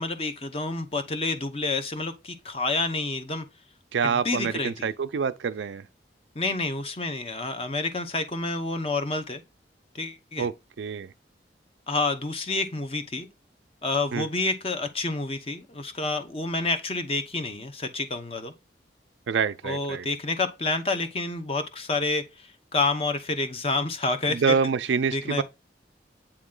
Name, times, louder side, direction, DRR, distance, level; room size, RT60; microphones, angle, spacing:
voice 1, 0.0-3.5 4.0-4.9 6.3-9.4 9.9-10.5 11.9-13.3 13.8-18.5 19.6-24.5 25.1-25.4, left 3 dB, 35° left, 0.8 m, -29 dB
voice 2, 3.9-5.9 10.4-10.5 10.8-11.1 14.1-14.3 19.3-20.1 24.3-25.4, right 6 dB, 90° right, 0.4 m, -26 dB
8.7 x 3.0 x 3.7 m
head